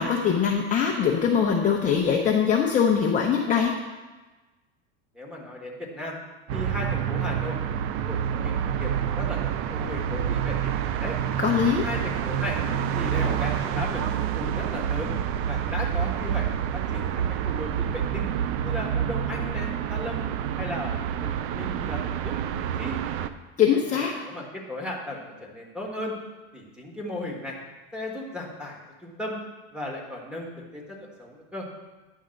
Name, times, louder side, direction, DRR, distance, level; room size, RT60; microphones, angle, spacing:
voice 1, 0.0-3.7 11.4-11.8 23.6-24.1, left 7 dB, 20° left, -1 dB, 0.7 m, -22 dB
voice 2, 5.1-6.2 6.5-7.6 8.0-11.2 11.8-12.6 12.9-15.1 15.5-16.5 16.7-18.3 18.6-20.2 20.6-22.3 22.6-23.0 23.7-26.1 26.5-27.6 27.9-29.4 29.7-31.7, left 1 dB, 5° right, -3 dB, 1.5 m, -36 dB
sound 1, 6.5-23.3, right 9 dB, 40° right, 0.4 m, -28 dB
10.0 x 3.6 x 6.4 m, 1.2 s
supercardioid pair, 135°, 35 cm